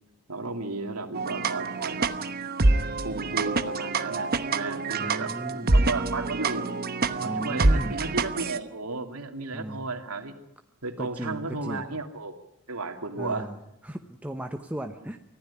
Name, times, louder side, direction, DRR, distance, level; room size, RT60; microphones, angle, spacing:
voice 1, 0.3-2.1 3.0-6.7 7.1-10.3 10.8-12.4 12.7-13.5, right 3 dB, 85° right, 5 dB, 2.7 m, -34 dB
sound 1, 1.1-8.6, right 3 dB, 45° right, 1.1 m, -26 dB
voice 2, 4.9-5.7 7.2-8.0 9.5-9.8 11.0-11.9 13.2-13.5 13.8-15.2, right 1 dB, 5° right, 5 dB, 0.9 m, -36 dB
24.5 x 15.5 x 9.8 m, 0.84 s
head